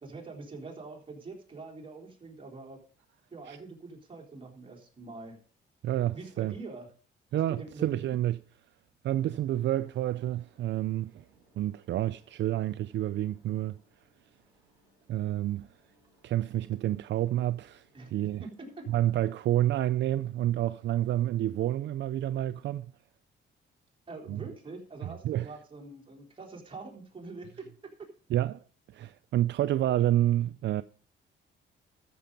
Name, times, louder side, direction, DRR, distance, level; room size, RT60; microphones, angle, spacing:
voice 1, 0.0-2.8 3.3-5.4 6.1-6.9 7.5-8.1 17.9-18.1 18.6-18.9 24.1-27.7, right 3 dB, 25° right, 3.6 m, -44 dB
voice 2, 5.8-6.5 7.3-8.4 9.0-11.3 11.6-13.8 15.1-15.8 16.2-18.5 18.9-22.9 24.3-24.5 25.0-25.5 28.3-28.6 28.9-30.8, right 13 dB, 65° right, 0.4 m, -29 dB
sound 1, 9.1-19.7, right 1 dB, 10° right, 5.9 m, -68 dB
13.5 x 6.8 x 5.3 m
cardioid pair, 90°, 20 cm